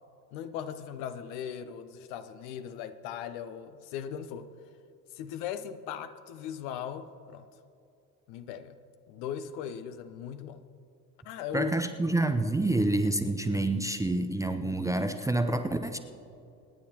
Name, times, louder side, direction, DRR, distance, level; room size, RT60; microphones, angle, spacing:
voice 1, 0.3-4.5 5.1-7.4 8.3-8.8 9.1-10.6 11.2-11.7, left 9 dB, 55° left, 11 dB, 0.9 m, -38 dB
voice 2, 11.5-16.0, right 2 dB, 5° right, 7 dB, 0.6 m, -28 dB
26.5 x 9.9 x 2.9 m, 2.6 s
figure-of-eight pair, 65°, 47 cm